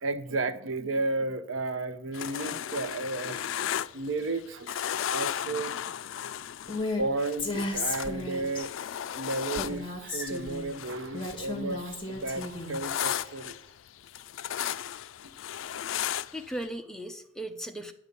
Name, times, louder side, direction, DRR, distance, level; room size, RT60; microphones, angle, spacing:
voice 1, 0.0-3.6 3.9-5.8 7.0-8.7 9.1-13.6 15.2-15.3, right 2 dB, 75° right, 0.8 m, -33 dB
sound 1, 2.1-4.4 4.7-11.4 11.7-16.6, left 10 dB, 75° left, 0.4 m, -35 dB
Female speech woman speaking, 6.7-7.0 7.4-8.7 9.6-10.7 11.1-12.8, left 2 dB, 25° left, 1.9 m, -34 dB
voice 2, 16.3-17.9, right 1 dB, 5° left, 0.8 m, -38 dB
9.9 x 6.6 x 6.8 m
head